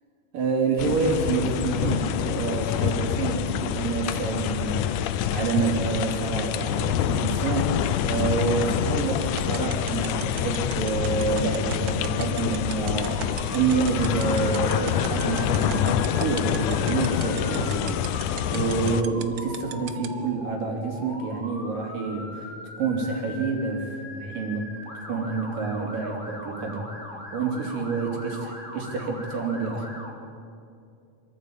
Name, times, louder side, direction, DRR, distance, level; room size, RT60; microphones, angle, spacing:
voice 1, 0.3-4.9 5.3-7.7 8.0-24.7 25.1-26.9 27.3-29.9, right 4 dB, 90° right, 2 dB, 4.7 m, -28 dB
sound 1, 0.8-19.0, left 10 dB, 75° left, 2.2 m, -26 dB
sound 2, 9.2-20.1, right 12 dB, 70° right, 2.1 m, -35 dB
Motor vehicle (road) / Siren, 12.8-30.1, left 1 dB, 15° left, 3.0 m, -41 dB
25.0 x 14.0 x 8.8 m, 2.6 s
omnidirectional pair, 3.7 m